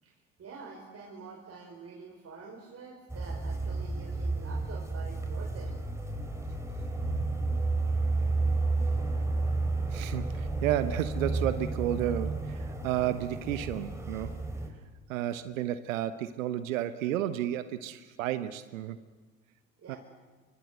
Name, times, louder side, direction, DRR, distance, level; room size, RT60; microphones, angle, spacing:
voice 1, 0.0-5.7 19.8-20.0, right 4 dB, 35° right, -1 dB, 5.0 m, -47 dB
sound 1, 3.1-14.7, right 3 dB, 5° right, 5.5 m, -31 dB
voice 2, 9.9-14.4 15.1-19.0 19.9-20.0, right 12 dB, 75° right, 13 dB, 1.1 m, -32 dB
28.0 x 24.0 x 7.9 m, 1.4 s
figure-of-eight pair, 60°, 40 cm